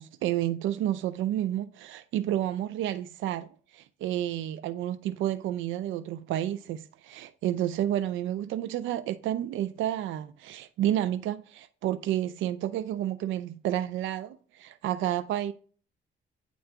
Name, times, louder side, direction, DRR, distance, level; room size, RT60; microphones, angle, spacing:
voice 1, 0.0-15.5, right 12 dB, 80° right, 0.4 m, -30 dB
8.8 x 3.9 x 4.5 m
cardioid pair, 90°, 20 cm